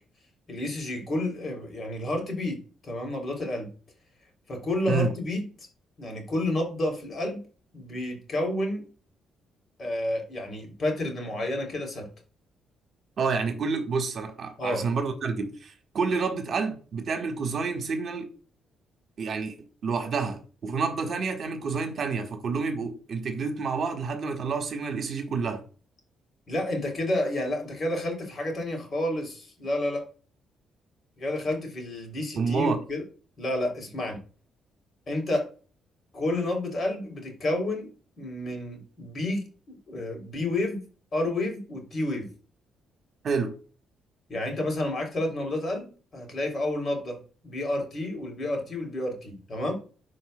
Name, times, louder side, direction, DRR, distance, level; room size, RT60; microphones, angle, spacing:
voice 1, 0.5-3.7 4.5-5.4 6.0-7.4 7.7-8.8 9.8-12.1 14.6-14.8 26.5-30.0 31.2-33.0 33.4-34.2 35.1-35.4 36.1-40.8 41.1-42.3 44.3-49.7, left 1 dB, 45° left, 3.1 m, -30 dB
voice 2, 13.2-18.3 19.2-19.5 19.8-25.6 32.4-32.8 43.2-43.5, right 5 dB, 55° right, 1.4 m, -29 dB
11.5 x 4.5 x 2.2 m
cardioid pair, 90°, 0 cm